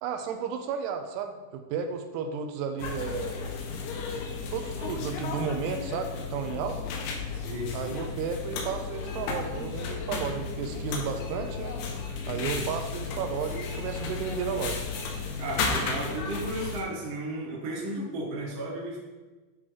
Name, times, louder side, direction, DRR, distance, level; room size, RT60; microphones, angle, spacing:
voice 1, 0.0-3.5 4.5-6.8 7.7-11.8 12.3-14.8, right 6 dB, 85° right, 6 dB, 2.6 m, -33 dB
sound 1, 2.8-16.8, left 4 dB, 85° left, 2.9 m, -34 dB
voice 2, 7.3-7.9 12.2-12.6 15.4-19.0, right 1 dB, 60° right, -5 dB, 1.3 m, -34 dB
10.0 x 3.6 x 3.3 m, 1.2 s
omnidirectional pair, 4.9 m